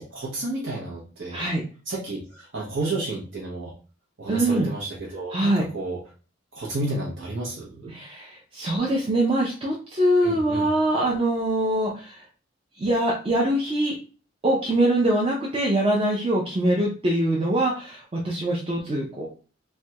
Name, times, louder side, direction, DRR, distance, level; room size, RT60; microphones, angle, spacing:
voice 1, 0.0-1.4 1.9-3.7 4.2-6.0 6.5-8.0 10.2-10.7, right 2 dB, 70° right, -5 dB, 0.8 m, -31 dB
voice 2, 1.3-1.6 4.3-4.7 5.3-5.7 7.9-12.2 12.8-13.9 14.4-19.3, right 1 dB, 30° right, -3 dB, 0.5 m, -23 dB
3.3 x 2.2 x 2.8 m, 0.37 s
head